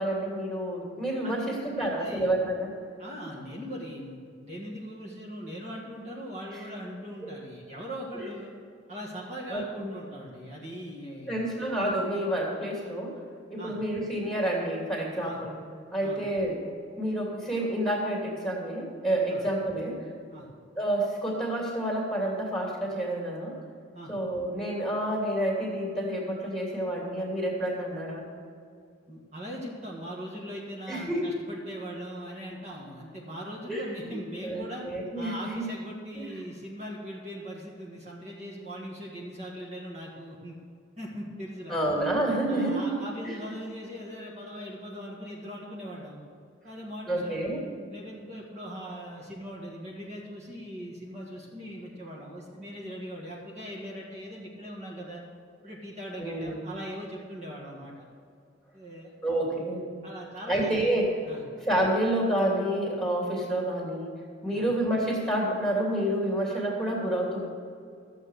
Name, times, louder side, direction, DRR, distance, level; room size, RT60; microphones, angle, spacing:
voice 1, 0.0-2.7 7.2-7.3 9.5-9.9 11.3-13.2 13.5-15.5 15.9-16.6 16.9-20.0 20.8-23.5 24.1-28.3 30.9-31.2 33.7-34.2 34.4-35.6 36.1-36.3 41.7-42.9 43.2-43.4 47.1-47.6 56.2-56.6 59.2-59.9 60.5-61.1 61.7-64.1 64.4-67.5, right 1 dB, 5° left, -3 dB, 2.7 m, -29 dB
voice 2, 1.2-2.3 3.0-8.5 8.9-11.5 13.6-13.8 15.2-15.4 16.0-16.2 19.3-19.4 20.3-20.5 23.9-24.1 29.1-34.8 35.2-40.6 41.0-41.8 42.5-46.2 46.6-55.2 55.6-57.9 58.7-59.1 60.0-60.9 61.2-61.4 64.5-64.6, equal, 35° right, -4 dB, 1.9 m, -40 dB
14.0 x 7.6 x 6.6 m, 2.3 s
head